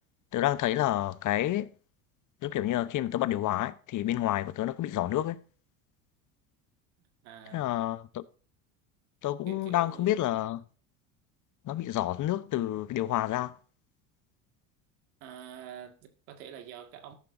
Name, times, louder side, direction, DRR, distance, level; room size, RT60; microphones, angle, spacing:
voice 1, 0.3-1.7 2.4-5.4 7.5-8.3 9.2-10.6 11.6-13.5, left 14 dB, 45° left, 0.9 m, -29 dB
voice 2, 7.2-7.6 9.5-10.3 15.2-17.1, right 9 dB, 80° right, 2.1 m, -46 dB
13.5 x 11.5 x 2.7 m
supercardioid pair, 90°, 41 cm